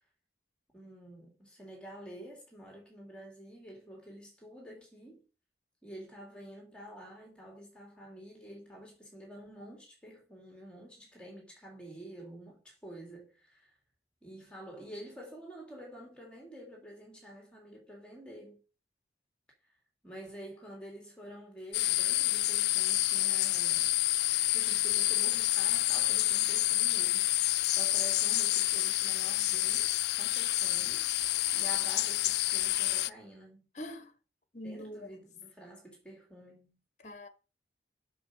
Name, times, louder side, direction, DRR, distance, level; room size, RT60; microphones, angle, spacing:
voice 1, 0.7-5.2 5.8-13.7 14.2-18.6 20.0-24.0 24.5-31.0 31.5-33.7 34.6-36.8, right 1 dB, 5° left, 3.3 m, -49 dB
sound 1, 21.7-33.1, left 16 dB, 65° left, 0.4 m, -28 dB
voice 2, 33.8-34.1 34.5-35.2 37.0-37.3, left 1 dB, 40° left, 1.3 m, -43 dB
8.4 x 6.6 x 6.4 m
head